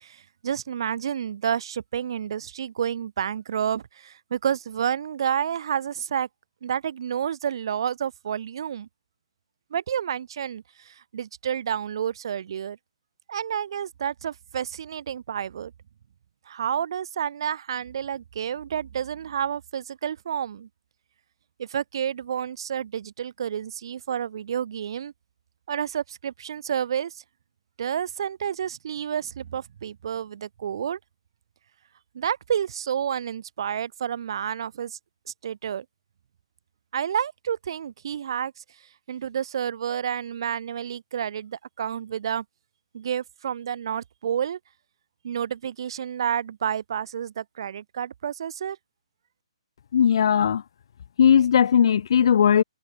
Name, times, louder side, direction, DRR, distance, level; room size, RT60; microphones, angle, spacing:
voice 1, 0.0-6.3 6.6-8.9 9.7-12.8 13.3-15.7 16.5-20.7 21.6-25.1 25.7-27.2 27.8-31.0 32.1-35.0 35.4-35.9 36.9-38.6 39.1-42.4 42.9-44.6 45.2-48.8, right 9 dB, 45° right, 3.9 m, -30 dB
voice 2, 49.9-50.6 51.2-52.6, left 8 dB, 50° left, 0.9 m, -18 dB
hypercardioid pair, 165°, 3 cm